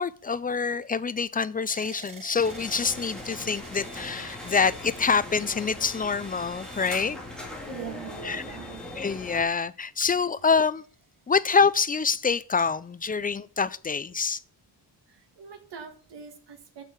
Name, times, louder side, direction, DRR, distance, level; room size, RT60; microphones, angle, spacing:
voice 1, 0.0-7.2 8.2-8.4 9.0-10.8 11.3-14.4, left 5 dB, 20° left, 0.4 m, -26 dB
sound 1, 1.7-9.7 10.4-11.1, right 6 dB, 50° right, 1.1 m, -52 dB
sound 2, 2.4-9.4, left 1 dB, ahead, 2.2 m, -40 dB
voice 2, 7.7-8.8 15.1-16.8, right 7 dB, 80° right, 1.7 m, -42 dB
7.5 x 6.5 x 8.0 m
wide cardioid pair, 175°, 42 cm